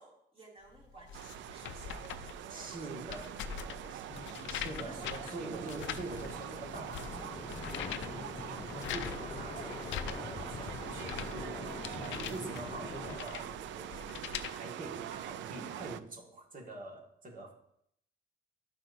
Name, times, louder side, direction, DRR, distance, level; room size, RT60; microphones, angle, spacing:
voice 1, 0.0-2.1 2.4-4.1 4.6-5.4, right 2 dB, 30° right, -2 dB, 2.5 m, -57 dB
sound 1, 0.7-14.5, left 8 dB, 90° left, 0.5 m, -43 dB
sound 2, 1.1-16.0, right 11 dB, 85° right, 0.4 m, -44 dB
voice 2, 2.5-3.4 3.9-4.0 4.5-17.5, right 3 dB, 45° right, 0 dB, 1.8 m, -45 dB
sound 3, 4.1-13.2, left 4 dB, 25° left, 0.5 m, -45 dB
12.0 x 5.9 x 2.6 m, 0.72 s
cardioid pair, 100°, 19 cm